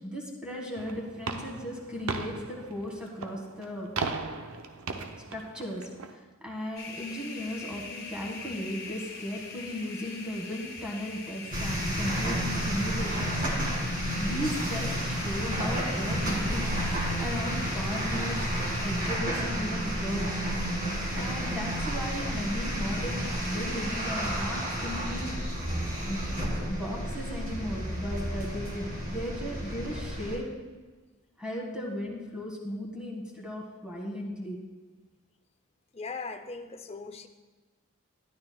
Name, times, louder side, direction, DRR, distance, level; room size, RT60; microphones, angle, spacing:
voice 1, 0.0-3.9 5.3-5.9 6.4-13.4 14.2-16.7 17.2-18.4 18.8-20.4 21.1-25.6 26.1-26.3 26.7-30.5 31.4-34.6, equal, 5° right, -1 dB, 1.7 m, -36 dB
sound 1, 0.8-6.1, right 4 dB, 90° right, 0.7 m, -37 dB
sound 2, 6.8-19.2, left 4 dB, 45° left, 1.3 m, -43 dB
sound 3, 11.5-30.4, equal, 45° right, 2.1 m, -31 dB
voice 2, 35.9-37.3, left 4 dB, 30° left, 8 dB, 0.5 m, -39 dB
12.5 x 11.0 x 2.3 m, 1.3 s
head